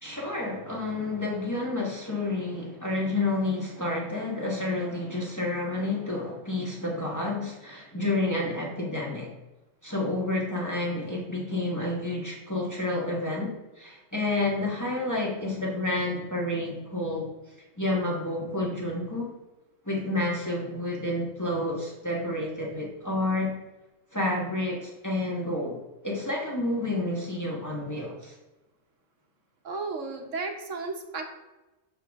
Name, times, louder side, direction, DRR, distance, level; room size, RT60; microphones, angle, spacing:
voice 1, 0.0-9.3 9.8-17.3 17.8-19.3 19.8-23.5 24.1-28.3, left 2 dB, 15° left, -3 dB, 1.3 m, -30 dB
voice 2, 29.6-31.3, right 3 dB, 70° right, 4 dB, 1.3 m, -34 dB
6.6 x 5.7 x 3.5 m, 1.1 s
omnidirectional pair, 1.3 m